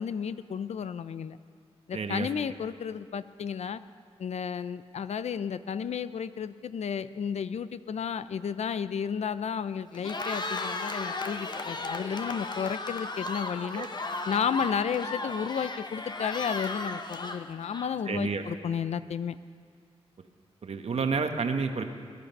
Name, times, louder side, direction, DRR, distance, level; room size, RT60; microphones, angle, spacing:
voice 1, 0.0-1.4 1.9-3.8 4.2-13.9 14.3-19.4, left 7 dB, 80° left, 14 dB, 0.5 m, -32 dB
voice 2, 1.9-2.3 13.7-13.9 18.1-18.4 20.6-21.8, right 5 dB, 70° right, 6 dB, 1.1 m, -30 dB
Cheering, 9.9-18.2, left 3 dB, 40° left, 1.0 m, -35 dB
21.5 x 11.0 x 5.4 m, 2.1 s
wide cardioid pair, 75°, 11 cm